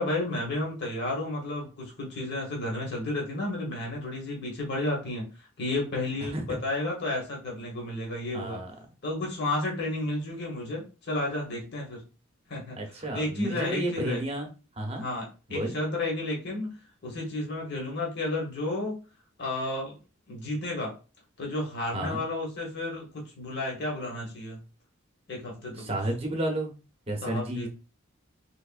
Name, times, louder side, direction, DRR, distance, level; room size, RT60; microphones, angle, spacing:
voice 1, 0.0-8.6 9.0-12.0 12.5-12.8 13.1-14.2 15.0-16.7 17.0-19.0 19.4-20.0 20.3-20.9 21.4-23.1 23.4-24.6 25.3-25.8 27.2-27.7, left 2 dB, 50° left, -1 dB, 1.1 m, -32 dB
voice 2, 6.2-6.6 8.3-8.7 12.8-14.5 14.8-15.1 15.5-15.7 21.9-22.2 25.8-26.7 27.1-27.7, right 1 dB, 30° right, 2 dB, 0.8 m, -31 dB
3.5 x 3.2 x 2.4 m, 0.33 s
head